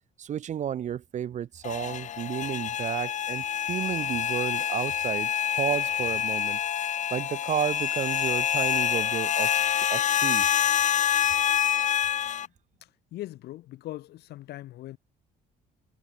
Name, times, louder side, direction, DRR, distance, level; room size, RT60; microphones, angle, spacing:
voice 1, 0.2-6.6 7.1-9.6 9.9-10.6, right 9 dB, 45° right, 0.8 m, -32 dB
sound 1, 1.6-12.5, left 10 dB, 45° left, 0.8 m, -27 dB
voice 2, 12.8-15.0, left 15 dB, 75° left, 1.8 m, -41 dB
cardioid pair, 110°, 17 cm